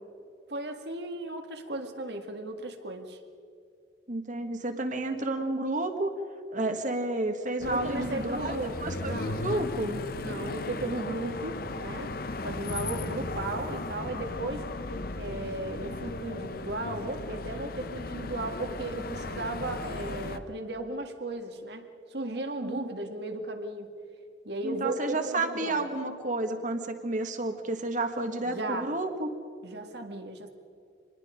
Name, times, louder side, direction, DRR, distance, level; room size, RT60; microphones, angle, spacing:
voice 1, 0.5-3.2 7.7-9.5 10.2-12.1 12.4-14.6 15.2-23.9 24.4-25.9 28.4-28.9 29.6-30.5, right 2 dB, 60° right, 5 dB, 2.0 m, -35 dB
voice 2, 4.1-6.1 6.5-8.5 8.8-9.1 9.4-10.0 22.6-22.9 24.6-29.3, right 2 dB, 45° right, 6 dB, 1.7 m, -31 dB
sound 1, 7.6-20.4, left 2 dB, 55° left, 0.9 m, -36 dB
26.5 x 20.0 x 5.2 m, 2.4 s
head